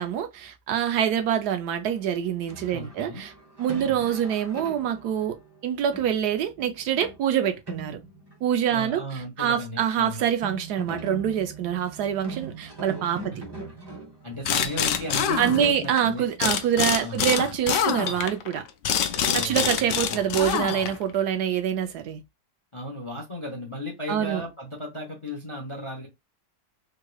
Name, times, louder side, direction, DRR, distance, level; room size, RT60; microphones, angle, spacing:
voice 1, 0.0-3.3 3.6-5.4 5.6-8.0 8.4-13.4 15.4-18.6 19.3-22.2 24.1-24.4, right 9 dB, 70° right, 1.0 m, -25 dB
sound 1, 2.5-9.2 9.4-9.5 9.7-9.8 10.2-16.4, right 3 dB, 25° right, 0.5 m, -41 dB
voice 2, 2.7-3.2 3.9-4.1 8.7-10.2 13.3-13.4 14.2-16.5 17.0-17.2 19.1-19.8 20.1-20.2 22.7-26.1, equal, 35° left, 0.5 m, -35 dB
sound 2, 14.4-16.0 16.4-21.1, left 8 dB, 80° left, 0.6 m, -26 dB
3.6 x 3.1 x 2.2 m
omnidirectional pair, 1.9 m